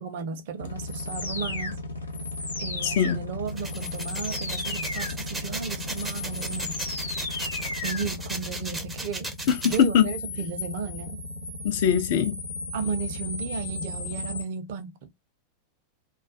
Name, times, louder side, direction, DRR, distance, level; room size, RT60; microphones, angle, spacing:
voice 1, 0.0-1.8 2.6-6.8 7.8-9.3 9.6-11.2 12.7-15.1, right 5 dB, 50° right, 0.6 m, -34 dB
sound 1, 0.6-14.4, left 3 dB, 80° left, 0.8 m, -34 dB
voice 2, 2.8-3.2 9.5-10.1 11.6-12.4, left 8 dB, 50° left, 0.5 m, -22 dB
sound 2, 3.5-9.8, right 2 dB, 10° right, 0.5 m, -36 dB
2.3 x 2.2 x 2.4 m
figure-of-eight pair, 90°, 0 cm